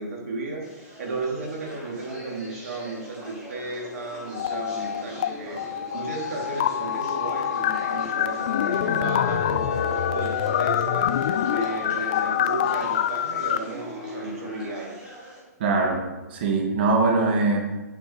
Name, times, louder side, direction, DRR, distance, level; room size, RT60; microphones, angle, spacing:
voice 1, 0.0-5.6 5.9-11.1 11.4-15.2, right 3 dB, 55° right, -2 dB, 4.0 m, -34 dB
sound 1, 0.6-15.4, equal, 10° right, 3.4 m, -41 dB
sound 2, 4.2-13.1, left 3 dB, 70° left, 2.2 m, -37 dB
sound 3, 4.3-5.3 5.6-13.6, left 10 dB, 30° left, 0.3 m, -26 dB
voice 2, 15.6-16.0 16.3-17.6, right 3 dB, 35° right, 1 dB, 2.0 m, -22 dB
9.6 x 9.5 x 5.2 m, 1.1 s
hypercardioid pair, 180°, 10 cm